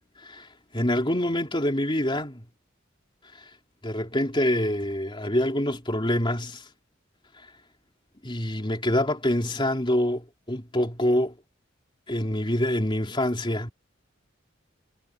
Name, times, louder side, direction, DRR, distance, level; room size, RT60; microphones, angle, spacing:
voice 1, 0.7-2.4 3.8-6.6 8.2-11.3 12.1-13.7, left 1 dB, 25° left, 3.2 m, -26 dB
head